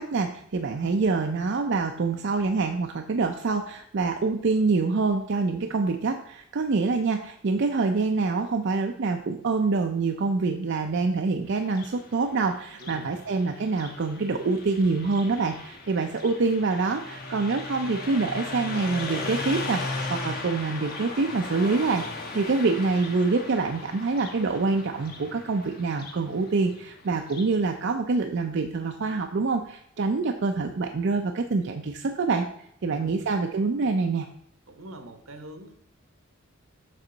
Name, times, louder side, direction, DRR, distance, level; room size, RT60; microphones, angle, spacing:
voice 1, 0.0-32.5 32.8-34.3, right 4 dB, 55° right, 5 dB, 0.5 m, -26 dB
Car passing by, 11.6-27.6, left 3 dB, 45° left, 1.1 m, -37 dB
voice 2, 12.8-13.2 32.9-33.3 34.7-35.7, right 1 dB, 80° right, 8 dB, 1.1 m, -44 dB
7.4 x 5.4 x 3.9 m, 0.70 s
head